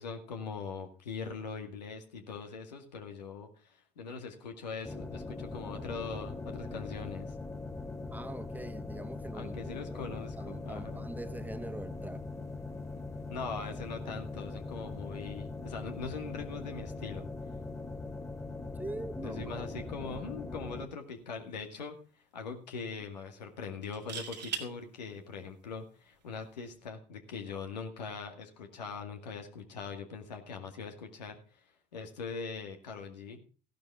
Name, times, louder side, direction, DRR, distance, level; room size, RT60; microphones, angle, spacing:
voice 1, 0.0-7.4 9.3-11.1 13.3-17.3 19.2-22.0 22.3-31.4 31.9-33.4, left 5 dB, 85° left, 2.1 m, -41 dB
sound 1, 4.8-20.9, left 3 dB, 15° left, 2.4 m, -41 dB
voice 2, 8.1-12.2 18.7-20.1, right 1 dB, 10° right, 1.5 m, -44 dB
sound 2, 21.0-21.2 21.6-21.7 23.8-24.7 26.5-26.7, right 7 dB, 90° right, 2.2 m, -39 dB
15.5 x 11.5 x 3.5 m
hypercardioid pair, 55°, 21 cm